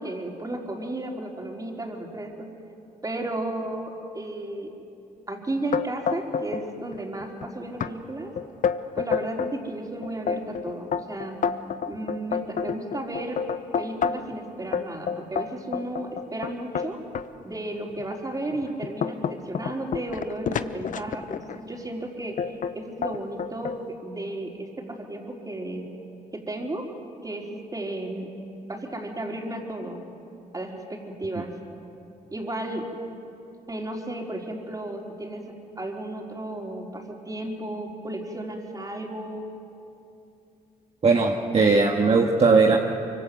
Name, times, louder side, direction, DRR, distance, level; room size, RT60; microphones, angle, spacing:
voice 1, 0.0-2.5 3.0-4.7 5.3-8.3 8.9-11.4 11.9-13.4 13.8-17.0 17.4-22.4 22.7-25.9 26.3-26.9 27.2-28.3 28.7-30.0 30.5-31.5 32.3-32.9 33.7-35.4 35.8-39.4, right 1 dB, 25° right, 0 dB, 4.5 m, -33 dB
sound 1, 5.7-6.6 6.9-7.4 7.8-7.9 8.4-9.5 10.0-14.3 14.7-17.3 17.9-18.0 18.5-21.6 22.4-22.7 23.0-23.8, left 6 dB, 60° left, 0.9 m, -28 dB
voice 2, 41.0-42.8, right 4 dB, 45° right, 0 dB, 1.9 m, -19 dB
25.0 x 24.0 x 7.9 m, 2.7 s
cardioid pair, 70°, 15 cm